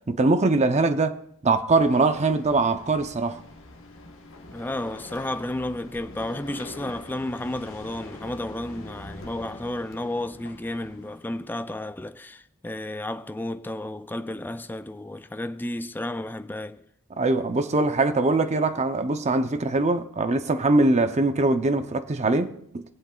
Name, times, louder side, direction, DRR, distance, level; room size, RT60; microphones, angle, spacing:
voice 1, 0.1-1.2 1.4-3.4 17.2-22.8, right 3 dB, 30° right, 0.6 m, -22 dB
sound 1, 1.8-11.7, left 2 dB, 60° left, 1.2 m, -44 dB
voice 2, 4.5-16.8, left 1 dB, 10° left, 0.3 m, -32 dB
23.5 x 7.8 x 2.4 m
head